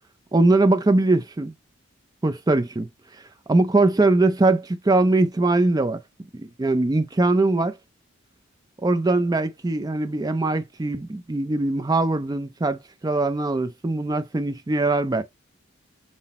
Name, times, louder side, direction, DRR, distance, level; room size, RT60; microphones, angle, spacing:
voice 1, 0.3-1.5 2.2-2.9 3.5-6.0 6.3-7.7 8.8-15.2, right 2 dB, 20° right, 0.4 m, -21 dB
5.8 x 2.0 x 4.1 m
head